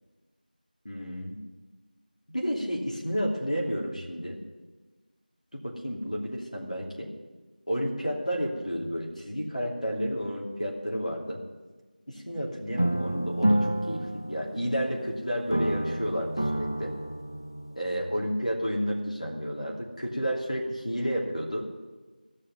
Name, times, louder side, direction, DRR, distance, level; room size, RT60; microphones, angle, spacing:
voice 1, 0.8-1.4 2.3-4.4 5.5-7.1 7.7-11.4 12.1-16.9 17.8-21.6, equal, 50° left, -1 dB, 2.8 m, -31 dB
sound 1, 12.8-15.1 15.5-17.8, right 1 dB, 30° left, 0.3 m, -29 dB
15.5 x 6.5 x 9.5 m, 1.3 s
figure-of-eight pair, 180°, 5 cm